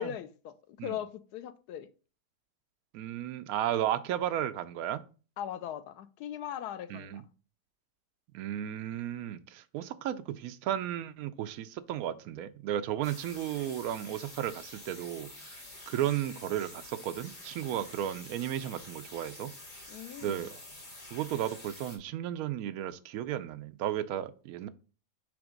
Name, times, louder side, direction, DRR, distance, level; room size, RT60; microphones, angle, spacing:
voice 1, 0.0-1.9 5.4-7.3 19.9-20.5, left 10 dB, 75° left, 1.1 m, -39 dB
voice 2, 2.9-5.0 6.9-7.2 8.3-15.3 15.9-19.5 20.2-20.5 21.1-24.7, right 11 dB, 70° right, 1.0 m, -34 dB
sound 1, 13.0-22.0, left 2 dB, 30° left, 2.0 m, -48 dB
7.0 x 3.0 x 5.0 m
omnidirectional pair, 1.8 m